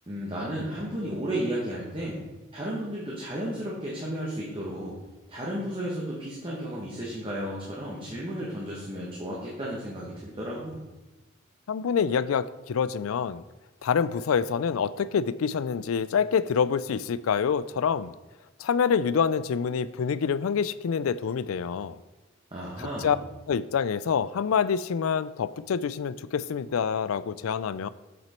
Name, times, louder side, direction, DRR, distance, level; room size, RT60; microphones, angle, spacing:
voice 1, 0.1-2.2 2.5-5.0 5.3-10.8 22.5-23.2, right 1 dB, 25° right, -5 dB, 1.4 m, -33 dB
voice 2, 11.7-13.4 13.8-18.1 18.6-22.0 22.8-23.2 23.5-27.9, left 6 dB, 80° left, 16 dB, 0.4 m, -26 dB
7.9 x 6.1 x 4.4 m, 1.1 s
head